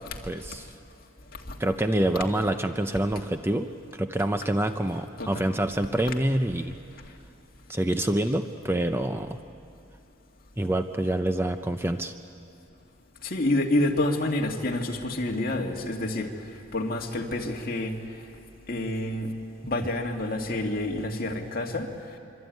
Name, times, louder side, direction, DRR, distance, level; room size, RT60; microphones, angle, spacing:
voice 1, 0.2-0.7 1.6-6.7 7.7-9.4 10.6-12.1, right 1 dB, 10° right, 7 dB, 0.6 m, -26 dB
voice 2, 13.2-16.3 16.7-18.0 18.7-19.3 19.7-21.9, left 1 dB, 45° left, 1 dB, 2.2 m, -28 dB
25.0 x 25.0 x 9.4 m, 2.6 s
head